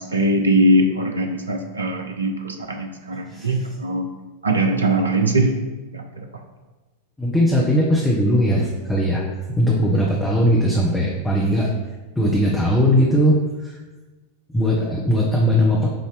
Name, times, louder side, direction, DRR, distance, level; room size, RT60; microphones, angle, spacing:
voice 1, 0.0-4.1 4.4-5.5 5.9-6.3, right 1 dB, 75° right, 4 dB, 0.7 m, -21 dB
voice 2, 7.2-9.2 9.5-11.7 12.2-13.7 14.5-15.9, equal, 10° left, -4 dB, 0.9 m, -19 dB
7.6 x 2.8 x 5.0 m, 1.2 s
figure-of-eight pair, 90°, 0 cm